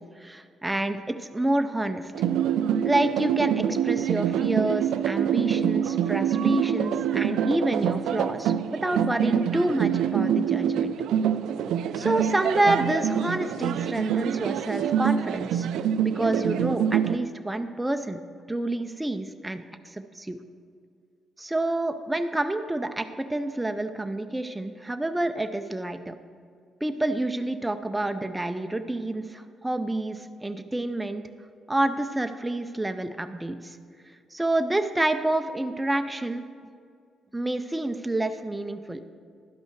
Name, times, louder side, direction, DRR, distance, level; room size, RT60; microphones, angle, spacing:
voice 1, 0.0-2.1 2.8-10.9 11.9-15.7 16.0-18.2 18.5-20.4 21.4-26.1 26.8-31.2 31.7-33.8 34.3-36.4 37.3-39.0, right 1 dB, 10° right, 7 dB, 0.4 m, -28 dB
sound 1, 2.1-17.2, right 9 dB, 80° right, 0.3 m, -25 dB
11.5 x 5.4 x 4.6 m, 2.2 s
cardioid pair, 90°, 0 cm